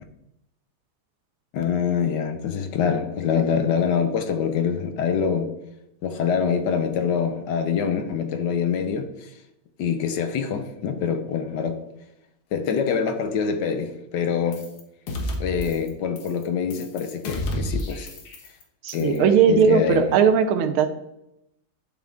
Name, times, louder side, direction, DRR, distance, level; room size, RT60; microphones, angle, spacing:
voice 1, 1.5-5.5 6.0-9.3 9.8-11.8 12.5-14.6 15.4-18.1 18.9-20.1, left 6 dB, 65° left, 1.2 m, -25 dB
sound 1, 14.5-14.8 15.1-15.9 16.2-16.4 16.7-18.6 18.9-19.2, left 1 dB, 85° left, 2.0 m, -31 dB
voice 2, 18.8-20.9, right 7 dB, 85° right, 1.5 m, -18 dB
10.5 x 3.7 x 3.5 m
omnidirectional pair, 2.3 m